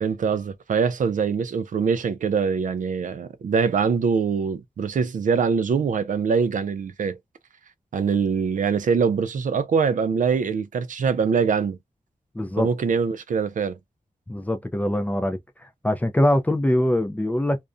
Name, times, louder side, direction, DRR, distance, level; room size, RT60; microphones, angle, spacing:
voice 1, 0.0-7.2 7.9-11.8 12.6-13.8, right 6 dB, 65° right, 0.4 m, -23 dB
voice 2, 12.3-12.7 14.3-15.4 15.8-17.6, left 1 dB, 10° left, 0.4 m, -22 dB
2.4 x 2.1 x 2.4 m
wide cardioid pair, 120°, 14 cm